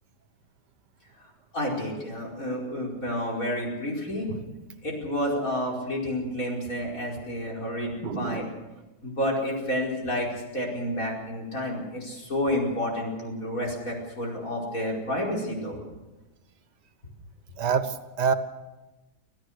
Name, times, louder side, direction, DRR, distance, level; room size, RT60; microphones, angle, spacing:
voice 1, 1.5-4.3 4.8-8.5 9.0-15.8, left 1 dB, 55° left, -2 dB, 5.4 m, -30 dB
voice 2, 8.0-8.5 17.6-18.3, right 6 dB, 85° right, 11 dB, 1.8 m, -27 dB
26.0 x 16.0 x 6.5 m, 1.1 s
omnidirectional pair, 1.8 m